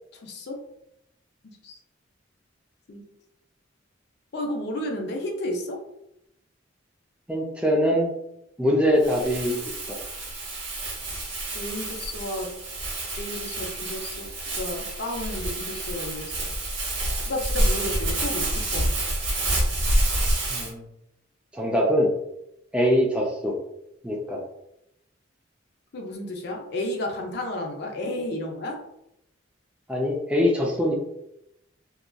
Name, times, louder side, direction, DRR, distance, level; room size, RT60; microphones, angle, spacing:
voice 1, 0.2-0.6 1.6-1.8 2.9-3.0 4.3-5.8 11.5-12.5 13.2-14.3 14.5-16.4 17.2-18.9 25.9-28.8, left 1 dB, 60° left, 1 dB, 0.5 m, -32 dB
voice 2, 7.3-8.1 8.6-9.6 9.9-10.0 20.5-20.9 21.5-22.1 22.7-23.6 24.0-24.4 29.9-30.9, equal, 5° right, -1 dB, 0.3 m, -23 dB
Crumpling crinkling, 9.0-20.7, right 1 dB, 85° right, 0.9 m, -28 dB
2.8 x 2.5 x 2.2 m, 0.80 s
head